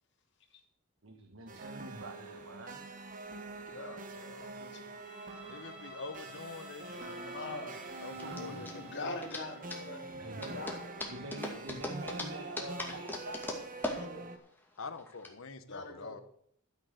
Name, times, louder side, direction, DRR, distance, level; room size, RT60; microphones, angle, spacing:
voice 1, 1.0-2.8 8.2-8.7 10.1-10.7 11.1-13.4, right 2 dB, 80° right, 5 dB, 1.4 m, -45 dB
sound 1, 1.5-14.4, right 2 dB, 40° right, 1.2 m, -45 dB
voice 2, 3.7-4.8 6.8-7.8 8.4-10.0 10.3-10.8 13.8-14.2 15.6-16.2, left 2 dB, 60° left, 1 dB, 2.8 m, -44 dB
Bowed string instrument, 4.9-9.8, right 1 dB, 5° right, 1.9 m, -53 dB
voice 3, 5.4-7.1 8.0-9.2 14.8-16.2, left 3 dB, 90° left, 11 dB, 1.1 m, -45 dB
sound 2, 6.4-15.3, left 1 dB, 10° left, 2.2 m, -42 dB
12.5 x 7.8 x 6.6 m, 0.66 s
head